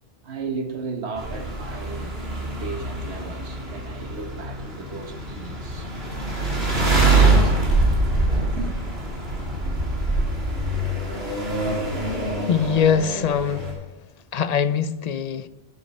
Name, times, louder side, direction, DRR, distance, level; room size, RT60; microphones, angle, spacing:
voice 1, 0.2-5.9 6.8-7.9 8.4-8.8, right 4 dB, 90° right, 1.5 m, -35 dB
sound 1, 1.2-13.7, right 2 dB, 70° right, 2.9 m, -24 dB
voice 2, 12.5-13.7 14.3-15.5, left 7 dB, 45° left, 0.6 m, -22 dB
11.5 x 7.2 x 5.3 m
omnidirectional pair, 1.1 m